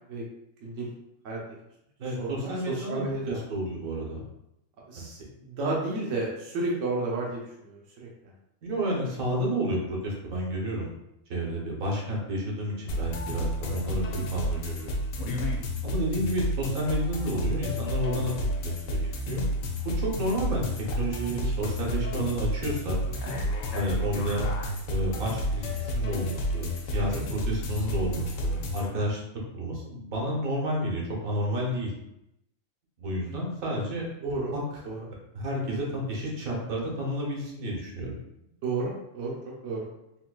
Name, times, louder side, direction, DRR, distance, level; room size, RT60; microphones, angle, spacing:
voice 1, 0.6-0.9 1.2-1.4 2.0-3.4 4.9-8.3 23.1-23.4 24.1-24.3 26.9-27.2 34.2-34.5 34.8-35.1 38.6-39.4 39.6-39.9, right 2 dB, 70° right, -3 dB, 1.0 m, -32 dB
voice 2, 2.0-4.2 5.0-5.1 8.6-10.9 11.3-15.0 15.8-18.3 18.6-19.5 19.8-23.0 23.7-24.5 24.9-29.2 29.5-31.9 33.0-34.8 35.3-38.2, equal, 85° right, -2 dB, 1.3 m, -31 dB
sound 1, 12.9-28.9, equal, 80° left, 1.0 m, -30 dB
3.7 x 2.6 x 2.2 m, 0.83 s
omnidirectional pair, 1.4 m